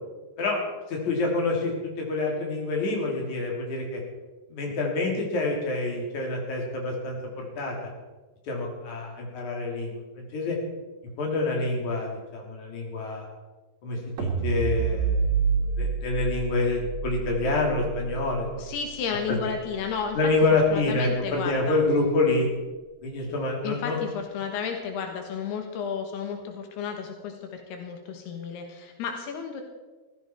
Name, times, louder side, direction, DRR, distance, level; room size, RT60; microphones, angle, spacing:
voice 1, 0.9-4.0 4.5-7.9 8.5-10.6 11.2-13.3 13.8-15.3 15.6-18.4 19.3-19.4 20.2-22.5 23.0-24.0, left 2 dB, 50° left, 0 dB, 4.0 m, -27 dB
sound 1, 14.2-20.5, right 5 dB, 50° right, 3.3 m, -29 dB
voice 2, 18.6-20.3 20.7-21.8 23.6-29.6, left 6 dB, 85° left, 4 dB, 3.4 m, -32 dB
16.0 x 15.0 x 4.5 m, 1.3 s
omnidirectional pair, 4.6 m